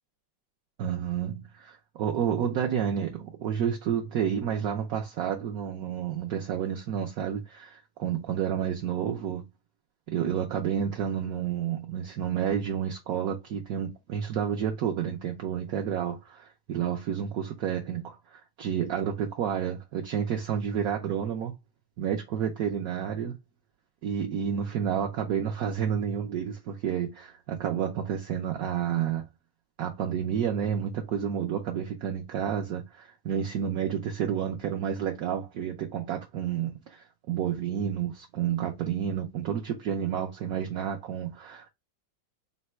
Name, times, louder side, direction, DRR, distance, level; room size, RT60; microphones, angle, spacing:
voice 1, 0.8-9.5 10.1-21.5 22.0-23.3 24.0-29.3 29.8-41.7, right 8 dB, 70° right, 0.9 m, -30 dB
4.0 x 2.1 x 4.2 m
omnidirectional pair, 2.0 m